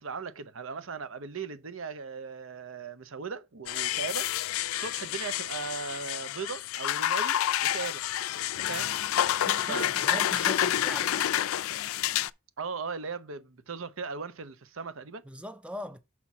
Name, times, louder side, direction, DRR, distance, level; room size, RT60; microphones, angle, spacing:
voice 1, 0.0-8.0 8.7-8.9 9.7-10.2 12.6-15.2, right 5 dB, 75° right, 0.7 m, -38 dB
sound 1, 3.7-12.3, left 12 dB, 85° left, 0.3 m, -29 dB
voice 2, 9.4-11.3 15.2-16.0, equal, 5° right, 0.5 m, -40 dB
5.8 x 4.2 x 6.0 m
head